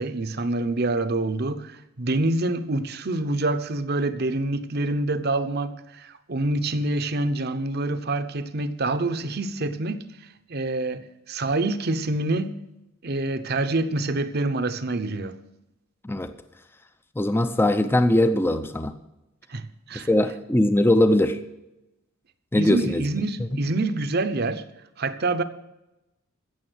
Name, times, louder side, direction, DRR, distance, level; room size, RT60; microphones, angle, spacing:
voice 1, 0.0-10.1 10.5-12.6 13.0-15.4 19.5-20.1 22.5-24.6 25.0-25.4, right 2 dB, 50° right, 0.8 m, -26 dB
voice 2, 17.2-19.0 19.9-21.4 22.5-23.1, left 1 dB, 10° left, 0.5 m, -21 dB
16.0 x 7.0 x 6.3 m
head